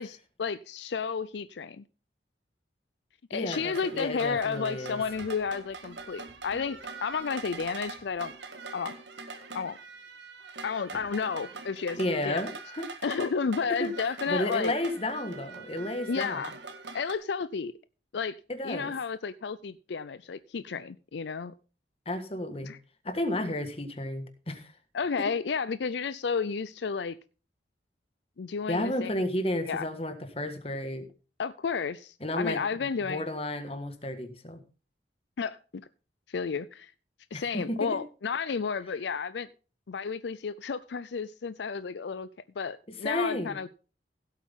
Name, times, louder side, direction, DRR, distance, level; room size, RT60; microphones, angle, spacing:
voice 1, 0.0-1.8 3.3-8.3 8.7-9.0 9.5-9.8 10.6-12.0 12.2-12.4 13.0-14.7 16.1-16.5 16.9-17.7 18.1-18.4 18.6-21.5 22.6-22.8 23.4-23.7 24.9-27.2 28.4-29.2 29.6-29.9 31.4-33.3 35.4-35.9 36.3-36.9 37.3-39.5 39.9-42.3 42.6-43.7, left 5 dB, 75° left, 0.5 m, -32 dB
voice 2, 3.3-5.0 12.0-12.9 13.7-13.9 14.3-16.4 18.5-18.9 22.0-22.7 23.0-24.7 25.2-25.3 28.7-31.1 32.2-32.6 33.1-34.6 37.3-38.0 43.0-43.6, left 1 dB, 35° left, 1.6 m, -32 dB
sound 1, 3.5-17.1, right 4 dB, 85° right, 1.8 m, -43 dB
16.0 x 8.2 x 3.6 m
head